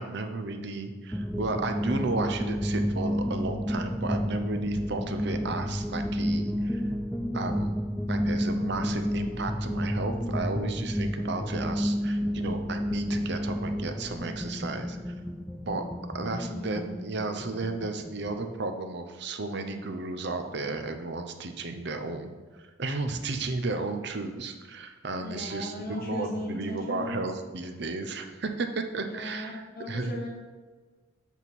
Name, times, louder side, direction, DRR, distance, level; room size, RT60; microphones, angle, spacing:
voice 1, 0.0-6.8 7.3-7.8 8.1-15.1 15.7-15.8 16.1-22.3 22.6-30.1, right 3 dB, 60° right, 7 dB, 0.7 m, -33 dB
sound 1, 1.1-18.4, equal, 5° left, 0.3 m, -31 dB
voice 2, 16.3-16.7 25.2-27.2 29.0-30.3, left 1 dB, 50° left, -1 dB, 1.3 m, -37 dB
8.3 x 3.7 x 6.1 m, 1.4 s
head